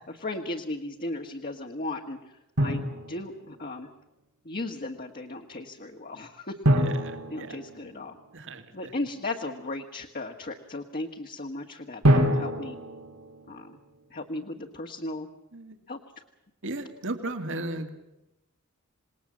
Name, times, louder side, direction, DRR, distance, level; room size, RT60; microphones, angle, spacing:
voice 1, 0.1-2.2 2.6-3.9 4.5-6.6 7.3-8.2 8.7-12.8 13.5-13.8 14.1-15.3 15.9-16.0, left 2 dB, 40° left, 3 dB, 1.6 m, -36 dB
Drum, 2.6-3.6 6.6-8.5 12.0-14.0, equal, 85° right, 4.2 m, -26 dB
voice 2, 6.7-7.6 8.3-8.9 15.5-15.8 16.6-17.9, right 2 dB, 60° right, 7 dB, 2.4 m, -36 dB
27.5 x 19.5 x 7.5 m, 0.93 s
head